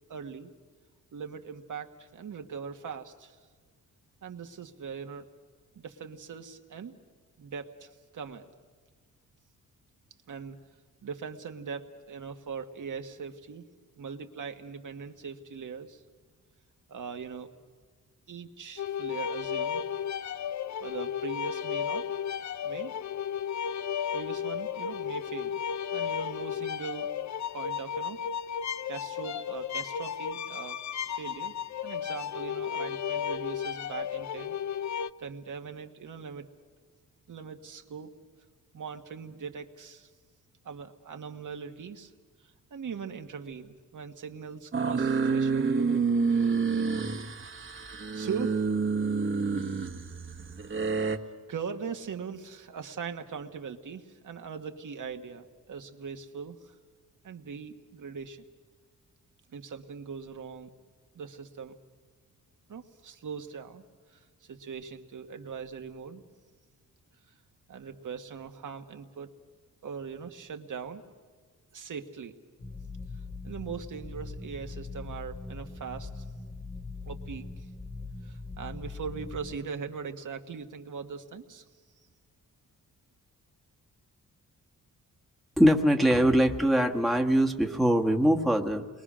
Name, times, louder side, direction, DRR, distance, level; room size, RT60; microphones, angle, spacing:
voice 1, 0.1-0.5 1.1-3.4 4.2-5.2 5.7-6.9 7.4-8.5 10.3-10.6 11.0-13.7 14.0-16.0 16.9-17.5 18.3-19.8 20.8-22.0 22.6-22.9 24.1-25.6 25.9-27.1 27.5-28.2 28.9-30.8 31.1-31.5 31.8-34.5 35.2-36.5 37.3-38.1 38.7-40.1 40.6-42.1 42.4-45.7 46.3-46.5 47.1-47.5 48.1-48.6 51.5-56.7 57.2-58.4 59.5-60.7 61.1-61.8 62.7-63.8 64.1-66.2 67.7-69.3 69.8-71.0 71.7-72.3 73.4-76.2 77.0-77.7 78.2-81.6, right 6 dB, 70° right, 5 dB, 1.5 m, -40 dB
sound 1, 18.8-35.1, left 8 dB, 60° left, 0.6 m, -34 dB
sound 2, 44.7-51.2, right 5 dB, 40° right, 1.4 m, -28 dB
sound 3, 72.6-79.6, left 3 dB, 30° left, 1.4 m, -41 dB
voice 2, 85.6-88.9, equal, ahead, 1 dB, 1.4 m, -22 dB
28.5 x 22.5 x 6.3 m, 1.5 s
wide cardioid pair, 115°, 32 cm